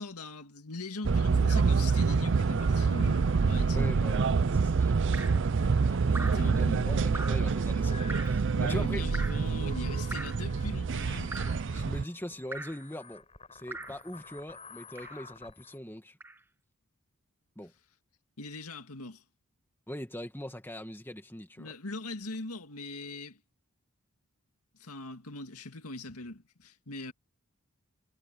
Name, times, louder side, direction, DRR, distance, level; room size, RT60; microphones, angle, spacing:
voice 1, 0.0-4.0 6.1-7.2 8.5-11.3 18.4-19.2 21.6-23.4 24.8-27.1, left 2 dB, 85° left, 2.1 m, -41 dB
sound 1, 1.0-12.0, right 4 dB, 55° right, 0.5 m, -27 dB
sound 2, 2.6-15.8, left 5 dB, 30° left, 4.2 m, -53 dB
voice 2, 3.7-9.1 11.7-16.2 17.6-17.7 19.9-21.7, left 1 dB, 10° left, 2.0 m, -42 dB
Drip, 5.1-5.5 6.1-6.5 7.1-7.5 8.1-8.4 9.1-9.5 10.1-10.5 11.3-11.7 12.5-12.8 13.7-14.0 15.0-15.3 16.2-16.4, right 2 dB, 10° right, 0.7 m, -41 dB
head